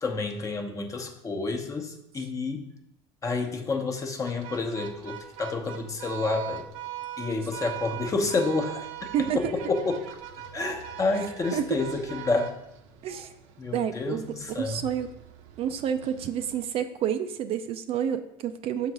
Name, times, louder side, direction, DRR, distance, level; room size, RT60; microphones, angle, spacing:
voice 1, 0.0-2.7 3.2-6.7 7.2-9.1 9.3-10.1 10.5-12.5 13.6-14.8, left 3 dB, 25° left, 3 dB, 1.0 m, -29 dB
sound 1, 4.3-16.6, right 12 dB, 70° right, 0.8 m, -41 dB
voice 2, 9.1-9.5 11.5-11.6 13.0-13.3 13.7-15.1 15.6-18.9, right 9 dB, 45° right, 8 dB, 0.5 m, -29 dB
6.2 x 3.9 x 6.0 m, 0.84 s
cardioid pair, 130°, 13 cm